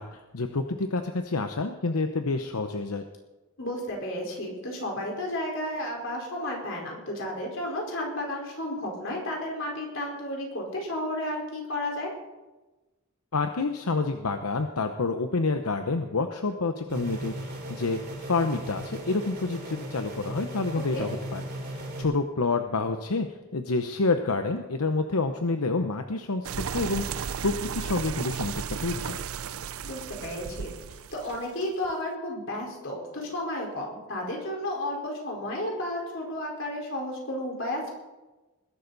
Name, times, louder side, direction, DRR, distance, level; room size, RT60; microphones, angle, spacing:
voice 1, 0.0-3.0 13.3-21.4 21.7-23.3 23.5-29.2, left 3 dB, 85° left, 6 dB, 0.9 m, -28 dB
voice 2, 3.6-12.1 20.9-21.1 29.8-37.9, left 1 dB, 60° left, -1 dB, 4.5 m, -32 dB
sound 1, 16.9-22.0, right 1 dB, 50° right, 4.3 m, -37 dB
sound 2, 26.4-31.9, right 7 dB, 70° right, 0.5 m, -34 dB
21.0 x 11.5 x 4.1 m, 1.1 s
head